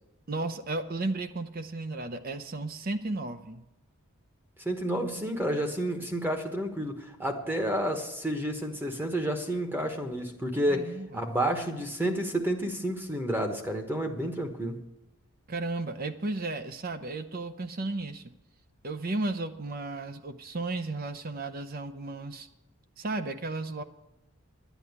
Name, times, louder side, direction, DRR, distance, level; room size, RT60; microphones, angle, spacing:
voice 1, 0.3-3.7 10.7-11.3 15.5-18.3 18.8-22.5 23.0-23.8, right 2 dB, 40° right, 9 dB, 0.6 m, -34 dB
voice 2, 4.6-14.8, right 1 dB, 10° right, 5 dB, 1.1 m, -30 dB
11.5 x 9.1 x 8.1 m, 0.98 s
head